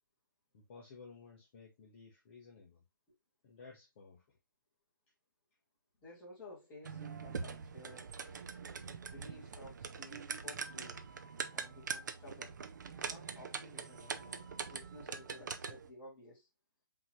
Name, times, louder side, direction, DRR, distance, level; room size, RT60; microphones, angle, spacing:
voice 1, 0.5-2.8 3.4-4.2, left 4 dB, 30° left, 1.2 m, -55 dB
voice 2, 6.0-8.1 9.1-11.0 11.5-16.5, left 1 dB, 15° left, 2.0 m, -55 dB
sound 1, 6.8-15.9, right 5 dB, 60° right, 0.7 m, -43 dB
5.5 x 3.0 x 3.1 m
hypercardioid pair, 165°, 11 cm